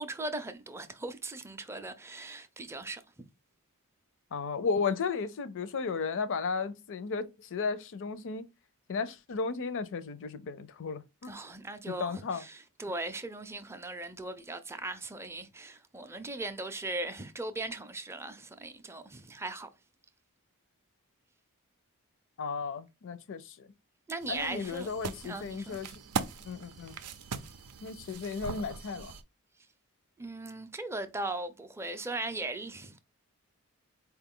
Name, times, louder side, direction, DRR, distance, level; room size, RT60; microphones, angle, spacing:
voice 1, 0.0-3.0 11.2-19.7 24.1-24.9 25.2-25.8 30.2-33.0, right 2 dB, 10° right, 0.4 m, -38 dB
voice 2, 4.3-8.5 8.9-11.3 12.0-12.4 22.4-23.7 24.3-25.9 26.4-27.0 27.8-29.1, left 5 dB, 60° left, 0.5 m, -34 dB
sound 1, 24.2-29.2, right 5 dB, 90° right, 0.5 m, -40 dB
4.3 x 2.3 x 3.6 m
head